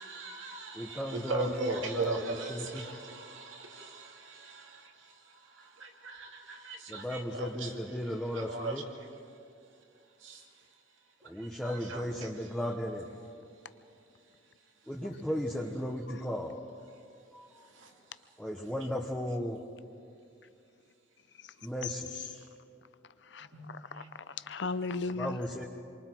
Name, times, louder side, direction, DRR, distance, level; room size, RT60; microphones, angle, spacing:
voice 1, 0.0-5.1 5.6-9.1 10.2-10.4 11.4-12.5 17.8-17.9 22.1-22.3 23.5-23.7 24.0-24.1, right 3 dB, 85° right, 2.5 m, -39 dB
voice 2, 0.8-2.2 2.7-2.8 6.9-8.8 11.3-13.0 14.9-16.6 17.3-17.4 18.4-19.6 21.6-22.3 25.2-25.7, equal, 5° left, 1.0 m, -35 dB
voice 3, 23.3-25.5, left 4 dB, 65° left, 0.7 m, -37 dB
28.5 x 24.0 x 4.6 m
head